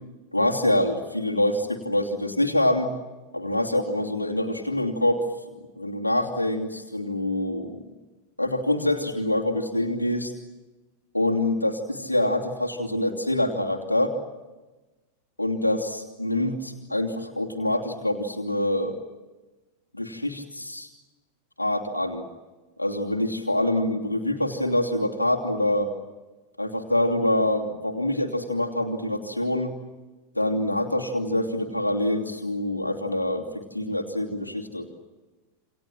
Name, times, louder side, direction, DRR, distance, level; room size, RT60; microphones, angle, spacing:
voice 1, 0.3-2.9 3.3-5.2 5.8-7.8 8.4-10.3 11.1-14.2 15.4-19.0 19.9-20.9 21.6-22.2 22.8-25.9 26.6-29.7 30.3-34.9, left 1 dB, 85° left, 0 dB, 2.9 m, -25 dB
28.5 x 27.5 x 7.6 m, 1.2 s
figure-of-eight pair, 90°, 0 cm